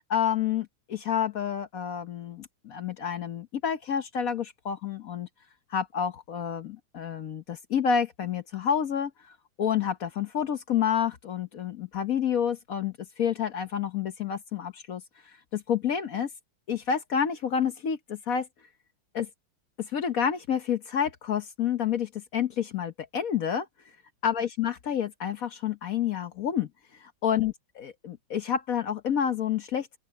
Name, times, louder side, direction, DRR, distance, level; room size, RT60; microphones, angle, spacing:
voice 1, 0.1-5.3 5.7-15.0 15.5-16.3 16.7-18.5 19.1-19.3 19.8-23.7 24.2-26.7 27.0-29.9, left 8 dB, 55° left, 1.0 m, -29 dB
open air
omnidirectional pair, 2.4 m